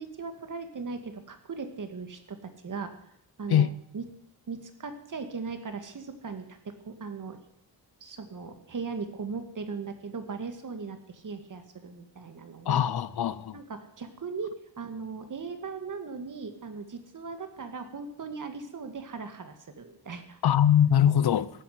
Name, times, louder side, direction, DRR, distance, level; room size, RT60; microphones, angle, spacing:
voice 1, 0.0-2.9 3.4-4.1 4.5-7.4 8.0-12.8 13.5-20.4, right 4 dB, 50° right, 2.1 m, -38 dB
voice 2, 12.7-13.6 20.4-21.5, left 10 dB, 65° left, 0.8 m, -22 dB
14.5 x 8.8 x 9.6 m
wide cardioid pair, 120°, 40 cm